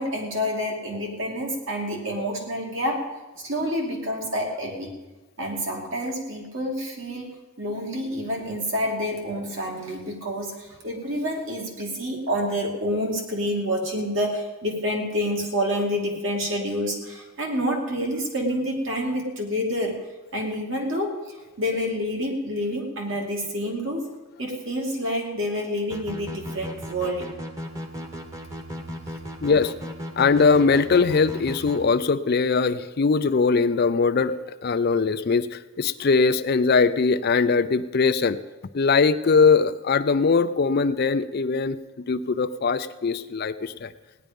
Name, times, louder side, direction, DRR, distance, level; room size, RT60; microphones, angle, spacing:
voice 1, 0.0-4.9 5.4-20.0 20.3-21.2 21.6-24.1 24.4-27.3 29.1-29.2, equal, 60° right, 0 dB, 2.6 m, -28 dB
sound 1, 25.9-31.8, equal, 15° right, 1.2 m, -35 dB
voice 2, 29.4-29.7 30.2-34.3 34.6-38.4 38.7-43.9, left 4 dB, 45° left, 11 dB, 0.4 m, -21 dB
17.5 x 10.5 x 5.3 m, 1.2 s
head